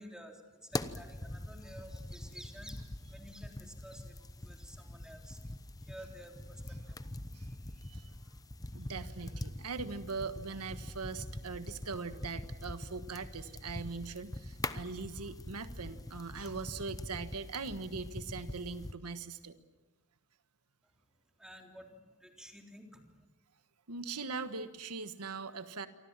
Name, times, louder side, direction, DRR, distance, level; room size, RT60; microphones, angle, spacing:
voice 1, 0.0-7.0 8.0-8.2 20.8-20.9 21.4-23.3, equal, 5° right, 2 dB, 3.7 m, -52 dB
sound 1, 0.7-18.9, left 1 dB, 15° left, 0.9 m, -43 dB
voice 2, 8.7-19.6 23.9-25.9, right 4 dB, 90° right, 10 dB, 1.4 m, -41 dB
28.0 x 24.5 x 7.4 m, 1.2 s
head